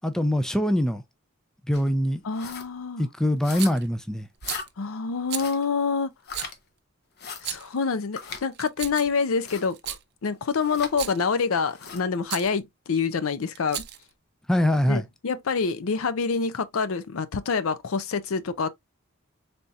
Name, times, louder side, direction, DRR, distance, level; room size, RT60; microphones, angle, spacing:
voice 1, 0.0-1.0 1.7-2.2 3.0-4.3 14.5-15.0, left 1 dB, 5° left, 0.4 m, -23 dB
sound 1, 1.7-1.9 2.3-2.7 3.4-3.9 4.4-4.7 5.3-5.6 6.2-6.5 7.2-7.4 8.2-8.4 9.4-9.7 10.6-10.9 11.7-12.0, left 6 dB, 50° left, 0.8 m, -38 dB
voice 2, 2.2-3.1 4.8-6.1 7.4-10.0 10.2-13.8 14.9-18.7, left 5 dB, 70° left, 0.5 m, -27 dB
Rattle, 3.6-3.9 4.4-4.7 5.3-5.5 6.3-6.5 7.3-7.8 8.5-9.2 9.7-10.0 10.8-11.3 12.3-12.5 13.5-14.1, right 12 dB, 50° right, 0.5 m, -34 dB
4.1 x 3.4 x 2.4 m
head